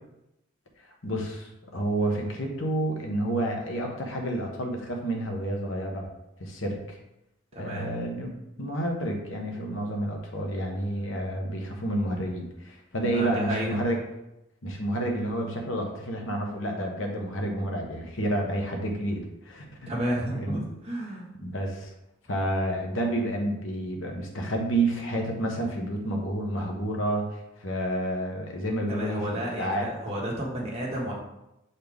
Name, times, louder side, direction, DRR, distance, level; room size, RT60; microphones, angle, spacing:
voice 1, 1.0-6.1 6.4-7.0 7.6-14.0 14.6-19.9 20.3-20.6 21.4-21.9 22.3-29.8, right 1 dB, 75° left, 1 dB, 1.2 m, -30 dB
voice 2, 7.5-7.9 13.1-13.8 19.9-21.3 28.9-31.1, right 1 dB, 30° right, -4 dB, 1.6 m, -31 dB
7.4 x 4.2 x 3.6 m, 0.88 s
head